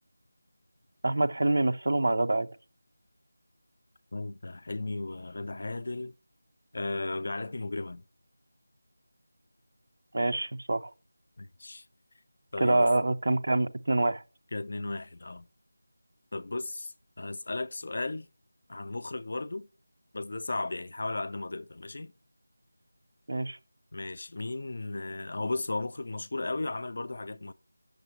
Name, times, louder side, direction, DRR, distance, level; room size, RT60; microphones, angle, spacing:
voice 1, 1.0-2.5 10.1-10.9 12.6-14.2 23.3-23.6, right 2 dB, 50° right, 0.5 m, -26 dB
voice 2, 4.1-6.1 6.7-8.0 11.4-11.9 12.5-12.9 14.5-15.5 16.3-18.3 18.7-19.7 20.1-22.1 23.9-27.5, left 2 dB, 45° left, 0.4 m, -35 dB
8.9 x 6.6 x 3.1 m
figure-of-eight pair, 175°, 0 cm